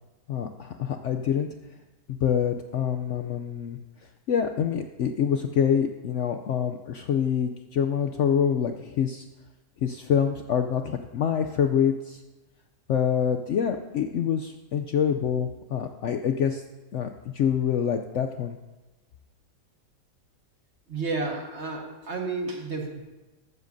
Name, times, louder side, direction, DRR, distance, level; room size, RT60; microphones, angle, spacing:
voice 1, 0.3-1.5 2.2-3.8 4.3-9.3 9.8-12.2 12.9-16.6 16.9-18.6, left 8 dB, 75° left, 7 dB, 0.6 m, -26 dB
voice 2, 20.9-23.0, right 3 dB, 40° right, 1 dB, 1.6 m, -31 dB
14.5 x 12.5 x 2.6 m, 1.1 s
omnidirectional pair, 1.8 m